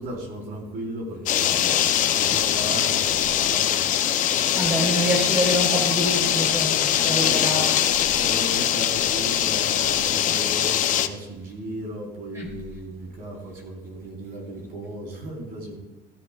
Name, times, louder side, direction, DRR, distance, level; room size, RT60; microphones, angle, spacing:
voice 1, 0.0-1.8 2.1-3.9 7.2-7.6 8.2-15.8, right 1 dB, 50° right, -2 dB, 4.0 m, -35 dB
sound 1, 1.3-11.1, left 10 dB, 40° left, 0.6 m, -22 dB
voice 2, 4.5-7.8 12.3-12.5, right 1 dB, 15° right, -1 dB, 3.6 m, -26 dB
15.5 x 13.0 x 2.4 m, 1.0 s
cardioid pair, 175°, 20 cm